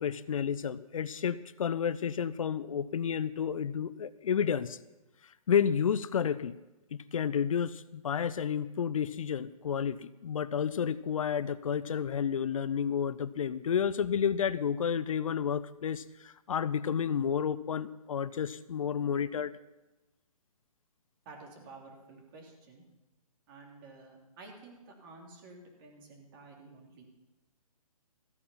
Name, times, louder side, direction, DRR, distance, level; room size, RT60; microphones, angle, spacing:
voice 1, 0.0-4.8 5.5-6.6 6.9-19.5, left 7 dB, 60° left, 17 dB, 0.5 m, -31 dB
voice 2, 21.2-22.8 23.5-27.0, right 3 dB, 35° right, 1 dB, 3.0 m, -51 dB
14.5 x 8.7 x 5.6 m, 1.0 s
hypercardioid pair, 145°, 19 cm